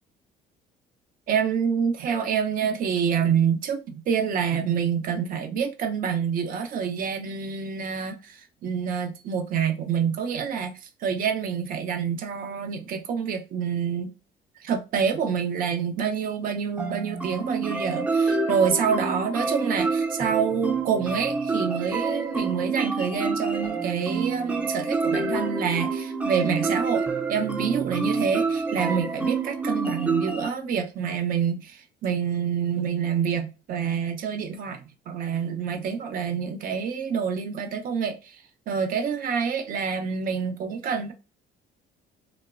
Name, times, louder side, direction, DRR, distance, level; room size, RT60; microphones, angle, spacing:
voice 1, 1.3-14.1 14.6-41.1, right 7 dB, 55° right, 0.5 m, -27 dB
sound 1, 16.8-30.5, right 4 dB, 10° right, 0.4 m, -27 dB
2.9 x 2.1 x 2.3 m
cardioid pair, 110°, 17 cm